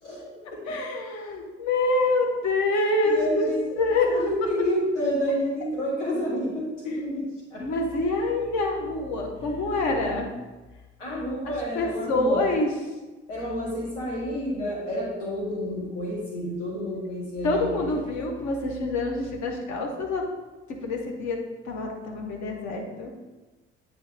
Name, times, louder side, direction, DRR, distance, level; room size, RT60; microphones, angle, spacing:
voice 1, 0.0-0.6 3.0-7.6 11.0-12.5 13.3-17.9, equal, 85° left, -5 dB, 1.9 m, -29 dB
voice 2, 0.7-3.5 3.8-4.1 7.6-10.3 11.7-12.7 17.4-20.2 20.8-21.4 21.7-23.1, left 2 dB, 50° left, 2 dB, 1.3 m, -26 dB
8.6 x 3.6 x 3.5 m, 1.2 s
figure-of-eight pair, 55°, 35 cm